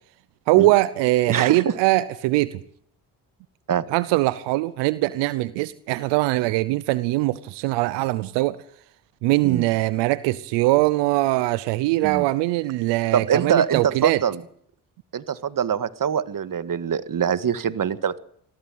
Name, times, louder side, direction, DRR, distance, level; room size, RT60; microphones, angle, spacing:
voice 1, 0.5-2.6 3.9-8.6 9.2-14.2, right 18 dB, 90° right, 17 dB, 0.8 m, -21 dB
voice 2, 1.3-1.7 3.7-3.9 9.4-9.6 12.0-12.2 13.1-14.4 15.1-18.2, right 8 dB, 50° right, 14 dB, 1.8 m, -24 dB
22.5 x 15.0 x 9.4 m, 0.66 s
supercardioid pair, 60°, 42 cm